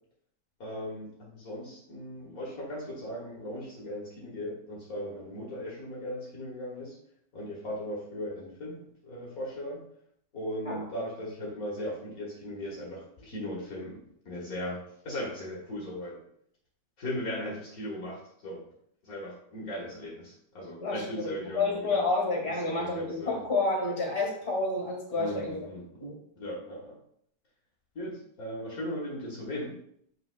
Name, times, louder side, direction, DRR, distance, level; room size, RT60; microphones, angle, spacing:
voice 1, 0.6-7.0 7.3-9.8 10.3-16.2 17.0-18.6 19.0-22.0 22.5-23.4 25.1-26.1 26.4-27.0 27.9-29.7, left 1 dB, 65° left, -3 dB, 0.8 m, -38 dB
voice 2, 20.8-25.7 26.0-26.1, left 3 dB, 30° left, -2 dB, 1.5 m, -29 dB
8.9 x 5.7 x 2.2 m, 0.68 s
omnidirectional pair, 3.8 m